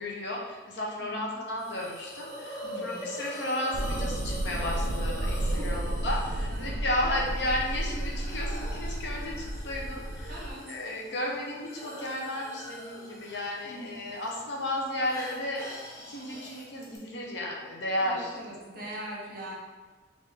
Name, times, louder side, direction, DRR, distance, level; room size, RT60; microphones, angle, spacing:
voice 1, 0.0-15.7 16.1-18.3 18.7-19.1, left 1 dB, 60° left, -2 dB, 0.6 m, -33 dB
voice 2, 1.0-1.4 2.6-3.0 5.6-5.9 6.5-6.9 10.3-10.7 13.6-14.1 18.0-19.5, right 1 dB, 45° right, -2 dB, 0.8 m, -42 dB
Hiss, 1.6-17.0, equal, 15° left, 0.6 m, -43 dB
sound 1, 3.7-10.5, right 1 dB, 65° right, 0.4 m, -32 dB
3.5 x 2.5 x 3.4 m, 1.4 s
head